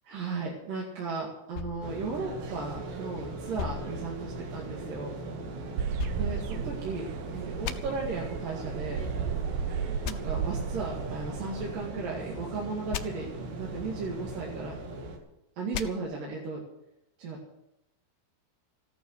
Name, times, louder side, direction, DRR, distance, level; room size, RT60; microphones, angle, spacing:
voice 1, 0.1-5.1 6.2-9.0 9.6-9.7 10.1-13.3 13.6-14.8 15.6-16.6 17.2-17.4, right 4 dB, 55° right, -3 dB, 3.4 m, -36 dB
sound 1, 1.5-3.0 3.6-4.8 6.0-7.1 7.6-7.8 10.0-10.2 12.9-13.0 15.7-15.9, left 9 dB, 75° left, 2.8 m, -38 dB
sound 2, 1.8-15.2, right 2 dB, 70° right, 4.2 m, -39 dB
sound 3, 5.8-11.9, right 7 dB, 85° right, 1.8 m, -34 dB
15.0 x 11.5 x 6.6 m, 0.85 s
omnidirectional pair, 5.2 m